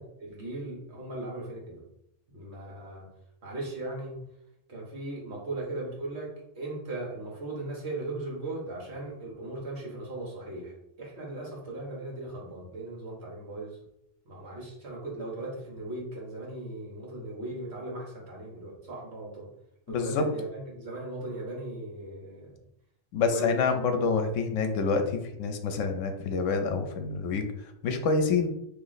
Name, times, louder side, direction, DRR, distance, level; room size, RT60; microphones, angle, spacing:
voice 1, 0.2-1.8 2.3-3.1 3.4-4.2 4.7-13.8 14.2-19.5 19.9-22.5 23.3-23.5, right 2 dB, 60° right, -3 dB, 1.4 m, -38 dB
voice 2, 19.9-20.3 23.1-28.5, left 4 dB, 80° left, 6 dB, 1.0 m, -27 dB
3.0 x 2.9 x 4.0 m, 0.79 s
omnidirectional pair, 1.3 m